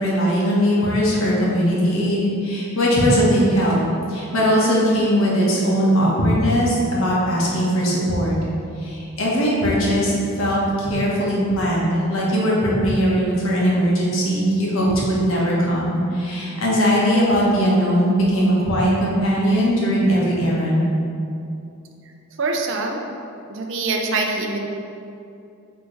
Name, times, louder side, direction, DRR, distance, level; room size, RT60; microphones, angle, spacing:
voice 1, 0.0-3.8 4.1-8.4 8.8-21.0, equal, 65° left, -5 dB, 1.4 m, -19 dB
voice 2, 22.4-23.0 23.5-24.7, right 3 dB, 60° right, 2 dB, 0.6 m, -24 dB
8.3 x 3.4 x 3.3 m, 2.6 s
head